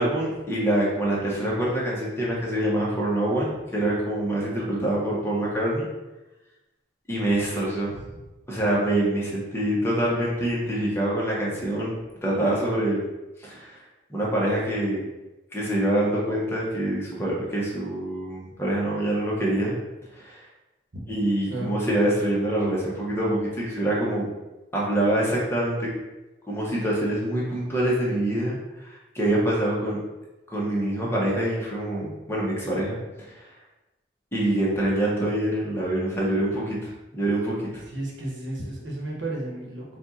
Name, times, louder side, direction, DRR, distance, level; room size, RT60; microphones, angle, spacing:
voice 1, 0.0-5.9 7.1-8.0 8.5-13.0 13.4-13.8 14.1-15.0 15.5-19.8 20.1-20.4 21.1-24.3 24.7-25.9 26.5-30.0 30.5-33.0 33.3-33.4 34.3-37.8, right 1 dB, 15° left, -5 dB, 1.0 m, -25 dB
voice 2, 21.5-21.8 37.9-40.0, right 1 dB, 85° right, -2 dB, 1.1 m, -33 dB
4.4 x 2.4 x 4.0 m, 1.0 s
head